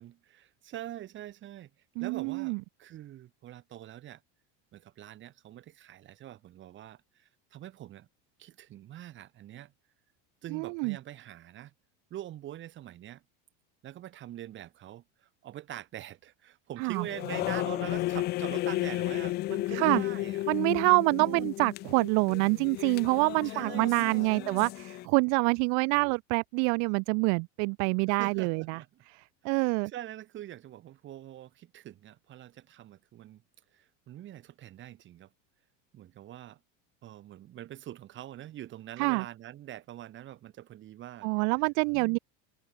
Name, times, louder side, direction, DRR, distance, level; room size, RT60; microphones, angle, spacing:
voice 1, 0.0-1.7 2.0-4.2 4.7-7.0 7.5-8.1 8.4-9.7 10.4-11.7 12.1-13.2 13.8-15.0 15.4-20.4 21.2-21.5 23.4-24.7 28.1-29.0 29.4-33.4 33.7-35.3 35.9-36.6 37.0-41.3 41.9-42.2, right 12 dB, 35° right, 2.1 m, -44 dB
voice 2, 2.0-2.6 10.5-11.0 16.8-17.1 19.7-20.0 20.5-28.8 29.1-29.9 39.0-39.3 41.2-42.2, right 40 dB or more, 55° right, 0.5 m, -26 dB
sound 1, 17.0-25.1, left 17 dB, 30° left, 0.4 m, -33 dB
cardioid pair, 155°, 35 cm